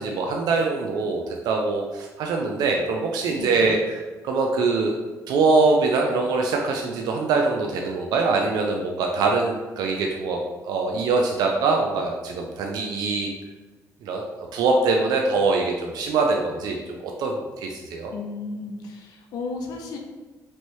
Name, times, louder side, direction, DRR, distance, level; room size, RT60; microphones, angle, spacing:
voice 1, 0.0-5.0 5.3-13.3 14.0-14.2 14.5-18.1, right 3 dB, 80° right, 1 dB, 0.4 m, -23 dB
voice 2, 3.3-3.7 18.1-20.0, left 3 dB, 80° left, 2 dB, 0.6 m, -34 dB
3.0 x 2.6 x 3.0 m, 1.3 s
cardioid pair, 75°, 7 cm